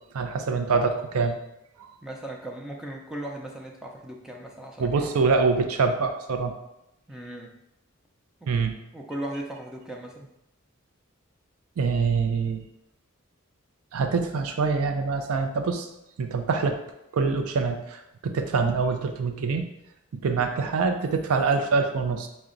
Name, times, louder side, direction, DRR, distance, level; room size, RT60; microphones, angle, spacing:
voice 1, 0.1-1.4 1.8-1.9 4.8-6.5 8.5-8.8 11.8-12.6 13.9-15.9 16.2-16.8 17.1-19.6 20.2-22.3, right 4 dB, 85° right, 6 dB, 0.4 m, -25 dB
voice 2, 2.0-5.1 7.1-7.5 8.4-8.5 8.9-10.3 20.3-20.5, right 1 dB, 5° right, -1 dB, 0.4 m, -37 dB
5.7 x 2.1 x 3.7 m, 0.86 s
head